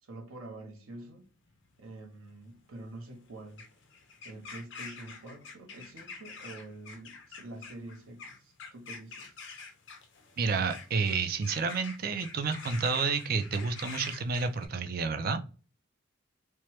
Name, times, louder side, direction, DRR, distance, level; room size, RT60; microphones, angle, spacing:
voice 1, 0.0-1.3 1.8-3.7 4.2-9.4, right 2 dB, 85° right, 0.8 m, -46 dB
sound 1, 1.3-14.7, left 4 dB, 60° left, 0.6 m, -47 dB
voice 2, 10.4-15.4, right 4 dB, 45° right, 0.4 m, -30 dB
3.0 x 2.2 x 2.9 m
head